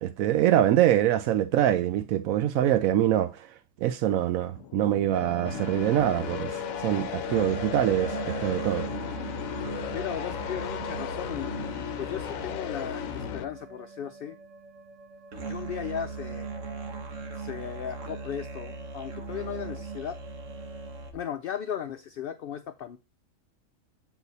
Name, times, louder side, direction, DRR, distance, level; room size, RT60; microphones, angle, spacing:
voice 1, 0.0-3.5 3.8-6.6 6.8-8.9, right 12 dB, 85° right, 1.0 m, -24 dB
sound 1, 4.5-13.5, left 11 dB, 80° left, 1.0 m, -36 dB
sound 2, 5.1-21.1, right 4 dB, 65° right, 1.6 m, -38 dB
voice 2, 9.9-11.5 12.0-14.4 15.5-16.5 17.4-20.2 21.1-23.0, left 9 dB, 65° left, 0.6 m, -36 dB
8.1 x 4.0 x 4.0 m
omnidirectional pair, 1.4 m